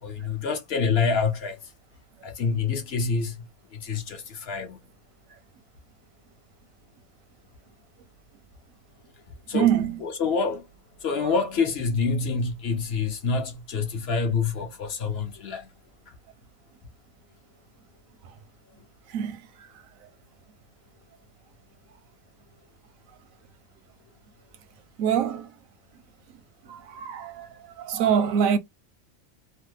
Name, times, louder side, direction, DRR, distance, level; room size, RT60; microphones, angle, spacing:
voice 1, 0.0-1.6 2.2-3.4 3.7-4.8 9.5-10.7 11.0-15.7, left 5 dB, 55° left, 1.0 m, -27 dB
voice 2, 9.5-10.0 11.2-11.3 19.1-19.4 25.0-25.5 26.7-28.6, right 8 dB, 90° right, 1.0 m, -25 dB
3.2 x 2.1 x 3.2 m
omnidirectional pair, 1.4 m